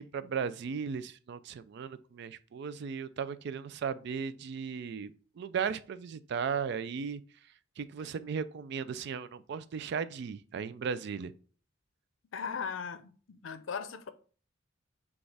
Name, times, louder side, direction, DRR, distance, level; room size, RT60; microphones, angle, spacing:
voice 1, 0.0-11.3, right 6 dB, 60° right, 0.3 m, -36 dB
voice 2, 12.3-14.1, left 6 dB, 85° left, 0.5 m, -38 dB
6.2 x 2.4 x 3.3 m
head